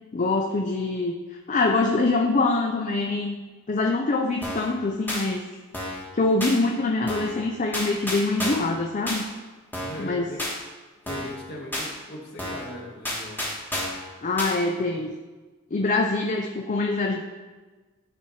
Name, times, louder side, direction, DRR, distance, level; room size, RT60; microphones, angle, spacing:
voice 1, 0.1-1.1 1.5-3.4 3.7-5.5 6.1-9.2 10.0-10.3 14.2-15.1 15.7-17.2, left 3 dB, 35° left, 2 dB, 0.5 m, -24 dB
sound 1, 4.4-4.7 5.1-5.2 5.7-6.1 6.4-6.6 7.1-7.4 7.7-8.7 9.1-9.2 9.7-10.1 10.4-10.6 11.1-11.4 11.7-11.9 12.4-12.7 13.0-14.0 14.4-14.5, left 1 dB, 10° left, 1.2 m, -30 dB
voice 2, 9.7-10.5 11.0-13.4, left 1 dB, 55° left, -3 dB, 1.8 m, -39 dB
12.0 x 4.2 x 3.2 m, 1.3 s
head